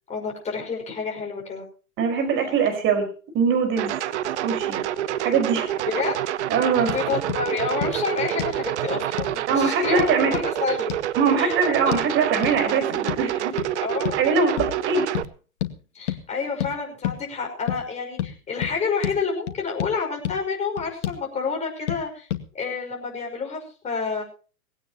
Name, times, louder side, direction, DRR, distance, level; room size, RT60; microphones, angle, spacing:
voice 1, 0.1-1.6 5.9-6.1 6.9-10.9 11.4-11.5 13.8-14.2 15.9-22.3 22.5-24.2, left 5 dB, 15° left, 0 dB, 5.7 m, -29 dB
voice 2, 2.0-3.1 3.3-4.0 4.4-4.8 5.2-5.7 6.5-7.0 9.5-10.4 11.1-13.6 14.2-15.1, right 5 dB, 25° right, 6 dB, 5.0 m, -22 dB
sound 1, 3.8-15.2, right 12 dB, 50° right, 1.1 m, -27 dB
sound 2, 6.9-7.0 7.3-7.4 7.8-7.9 8.4-8.6 9.2-9.4 10.0-10.5 10.9-11.0 11.9-12.0 12.4-12.6 13.1-13.3 13.6-13.7 14.0-14.2 14.6-14.8 15.1-15.3 15.6-15.7 16.1-16.2 16.6-16.7 17.0-17.2 17.7-17.8 18.2-18.3 18.6-18.7 19.0-19.2 19.5-19.9 20.2-20.4 20.8-21.2 21.9-22.0 22.3-22.4, left 12 dB, 50° left, 2.2 m, -29 dB
19.5 x 17.5 x 3.0 m, 0.38 s
hypercardioid pair, 125°, 44 cm